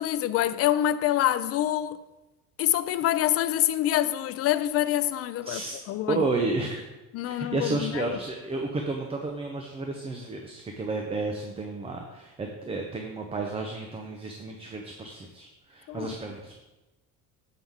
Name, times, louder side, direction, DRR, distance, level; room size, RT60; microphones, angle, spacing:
voice 1, 0.0-2.0 2.6-6.3 7.1-8.2 15.9-16.1, left 12 dB, 45° left, 0.4 m, -26 dB
voice 2, 5.5-5.8 6.1-6.8 7.3-16.5, right 3 dB, 20° right, 0.6 m, -32 dB
7.5 x 5.7 x 3.6 m
cardioid pair, 140°, 33 cm